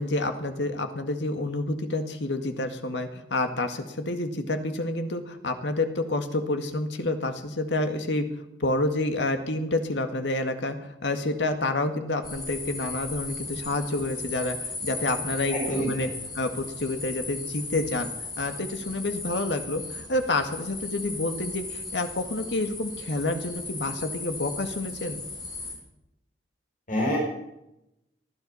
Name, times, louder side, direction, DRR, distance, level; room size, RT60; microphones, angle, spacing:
voice 1, 0.0-8.3 8.6-16.1 16.3-18.1 18.4-25.2, left 2 dB, 85° left, 7 dB, 1.9 m, -29 dB
sound 1, 12.2-25.7, left 3 dB, 25° left, 5.1 m, -37 dB
voice 2, 15.5-15.9 26.9-27.2, equal, 50° left, -1 dB, 6.1 m, -26 dB
19.5 x 12.5 x 5.6 m, 0.85 s
head